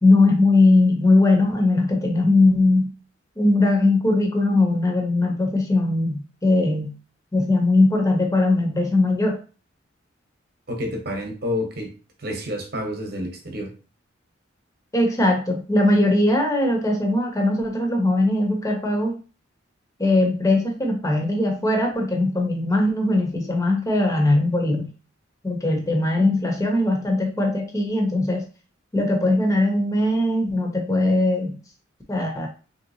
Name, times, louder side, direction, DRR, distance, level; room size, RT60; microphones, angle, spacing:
voice 1, 0.0-2.9 3.4-6.9 7.3-9.4 14.9-19.2 20.0-24.9 25.4-28.5 28.9-31.6 32.1-32.5, left 2 dB, 15° left, 2 dB, 0.6 m, -20 dB
voice 2, 10.7-11.9 12.2-13.7, left 1 dB, 50° right, 2 dB, 0.9 m, -29 dB
3.4 x 2.7 x 2.7 m, 0.36 s
head